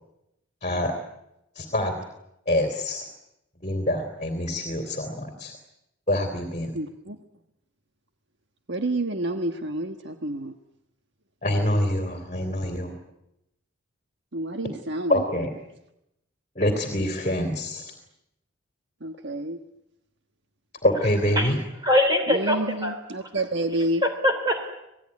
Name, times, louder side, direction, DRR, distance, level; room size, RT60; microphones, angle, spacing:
voice 1, 0.6-0.9 1.5-1.9 2.5-3.1 3.6-5.6 6.1-6.8 11.4-13.0 15.1-15.5 16.5-17.9 20.8-21.6, left 1 dB, 35° left, 5 dB, 3.1 m, -25 dB
voice 2, 6.7-7.2 8.7-10.5 14.3-15.4 19.0-19.6 22.3-24.0, right 1 dB, 55° right, 6 dB, 1.4 m, -29 dB
voice 3, 21.8-23.3 24.0-24.7, left 1 dB, 20° right, 5 dB, 3.4 m, -23 dB
27.5 x 18.5 x 9.7 m, 0.86 s
head